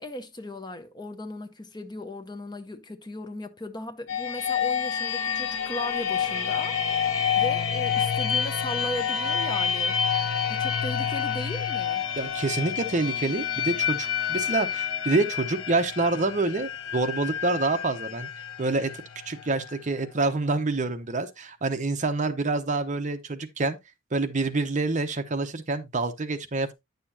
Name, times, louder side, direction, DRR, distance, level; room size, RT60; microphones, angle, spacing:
voice 1, 0.0-12.1, left 1 dB, 20° left, 0.7 m, -37 dB
sound 1, 4.1-19.7, left 7 dB, 80° left, 0.9 m, -28 dB
voice 2, 12.2-18.3 18.6-18.9 19.3-23.8 24.1-26.7, right 3 dB, 35° right, 0.8 m, -27 dB
10.0 x 6.7 x 2.6 m
head